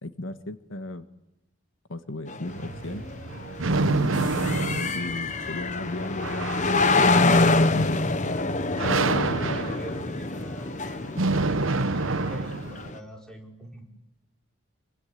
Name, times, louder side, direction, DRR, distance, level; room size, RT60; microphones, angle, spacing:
voice 1, 0.0-1.1 1.9-3.0 3.8-7.0, left 2 dB, 75° left, 10 dB, 1.5 m, -35 dB
sound 1, 2.3-13.0, left 3 dB, 35° left, 1.1 m, -26 dB
sound 2, 2.5-12.9, right 3 dB, 80° right, 1.1 m, -28 dB
voice 2, 8.2-13.9, right 1 dB, 5° left, 1 dB, 4.9 m, -45 dB
26.0 x 24.5 x 8.5 m, 0.87 s
head